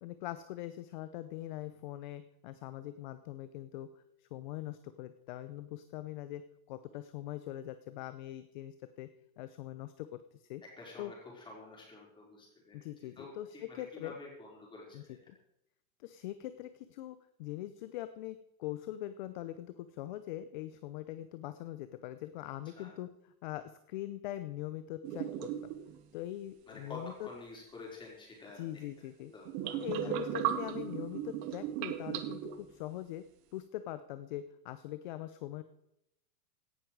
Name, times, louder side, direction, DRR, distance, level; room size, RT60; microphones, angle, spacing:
voice 1, 0.0-3.9 4.2-6.4 6.7-9.1 9.4-10.6 11.0-11.1 12.7-14.1 14.9-15.4 16.0-23.1 23.4-25.7 26.1-27.3 28.6-29.3 29.8-33.2 33.5-35.6, left 14 dB, 35° left, 12 dB, 0.6 m, -42 dB
voice 2, 10.6-12.9 13.2-15.2 22.6-23.0 26.7-28.8 29.3-30.3, left 2 dB, 10° left, -3 dB, 4.6 m, -50 dB
sound 1, 25.0-26.0 29.4-32.7, right 11 dB, 20° right, 0.5 m, -36 dB
17.0 x 12.0 x 4.8 m, 0.80 s
supercardioid pair, 165°, 44 cm